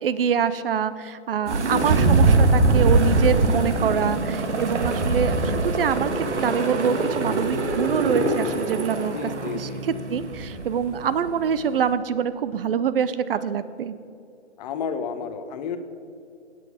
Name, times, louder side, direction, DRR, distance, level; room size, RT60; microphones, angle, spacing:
voice 1, 0.0-13.9, right 7 dB, 55° right, 14 dB, 0.6 m, -25 dB
voice 2, 1.5-2.3 9.1-10.0 14.6-15.8, left 5 dB, 35° left, 10 dB, 0.9 m, -32 dB
sound 1, 1.5-11.9, right 2 dB, 75° right, 1.8 m, -22 dB
14.5 x 8.5 x 5.0 m, 2.6 s
hypercardioid pair, 140°, 35 cm